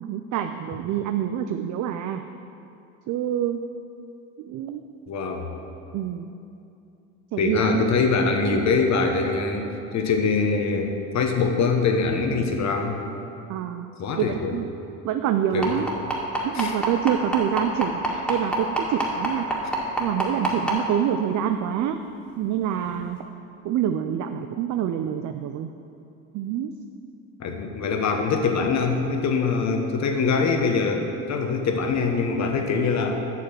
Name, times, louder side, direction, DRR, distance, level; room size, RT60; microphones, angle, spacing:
voice 1, 0.0-2.2 3.1-3.7 4.4-4.8 5.9-6.3 7.3-7.9 8.6-8.7 13.5-13.9 14.2-14.7 15.0-15.9 16.4-19.5 20.0-22.0 22.4-23.2 23.6-25.7 26.3-26.7, right 10 dB, 55° right, 7 dB, 0.5 m, -26 dB
voice 2, 5.1-5.5 7.4-10.9 11.1-13.0 14.0-14.5 15.5-15.8 16.5-16.7 27.4-33.2, left 4 dB, 50° left, 4 dB, 1.3 m, -23 dB
sound 1, 15.6-20.7 21.8-21.9 22.3-22.4 22.9-23.0, right 2 dB, ahead, 2.1 m, -24 dB
8.3 x 6.6 x 5.9 m, 2.6 s
supercardioid pair, 85°, 36 cm